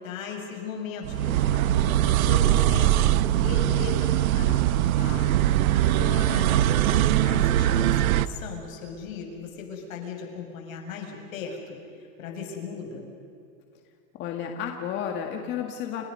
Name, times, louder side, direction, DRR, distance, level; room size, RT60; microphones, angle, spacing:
voice 1, 0.0-2.9 3.4-4.6 5.7-13.1, left 5 dB, 75° left, 2 dB, 7.4 m, -37 dB
sound 1, 1.0-8.3, right 13 dB, 85° right, 1.0 m, -22 dB
voice 2, 5.0-5.3 14.1-16.0, left 8 dB, 25° left, 3 dB, 1.8 m, -32 dB
30.0 x 30.0 x 5.6 m, 2.5 s
supercardioid pair, 175°, 41 cm